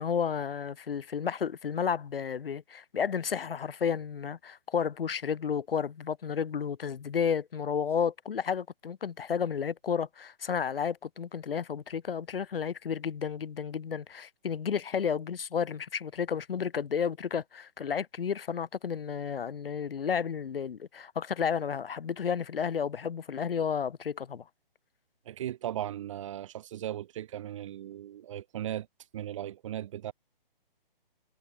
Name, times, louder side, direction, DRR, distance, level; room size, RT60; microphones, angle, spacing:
voice 1, 0.0-24.4, left 7 dB, 75° left, 0.9 m, -32 dB
voice 2, 25.2-28.9 29.1-30.1, right 11 dB, 35° right, 1.6 m, -37 dB
hypercardioid pair, 155°, 29 cm